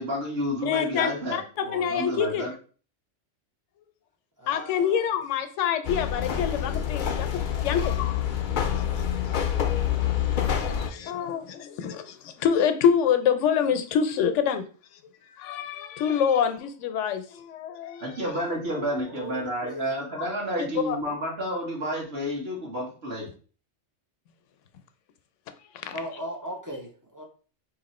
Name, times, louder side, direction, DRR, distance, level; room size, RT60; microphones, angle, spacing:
voice 1, 0.0-2.5 18.0-23.3, equal, 55° right, -3 dB, 1.3 m, -30 dB
voice 2, 0.6-2.5 4.5-8.3 8.8-9.0 10.9-14.6 14.9-18.2 18.8-19.0 20.2-20.3 20.6-21.0 25.7-26.0, left 8 dB, 80° left, 9 dB, 0.9 m, -26 dB
voice 3, 4.4-5.1 19.1-19.9 25.9-27.2, equal, 30° right, 1 dB, 0.4 m, -38 dB
sound 1, 5.8-10.9, left 9 dB, 60° left, 0.5 m, -27 dB
2.9 x 2.7 x 4.1 m, 0.40 s
omnidirectional pair, 1.3 m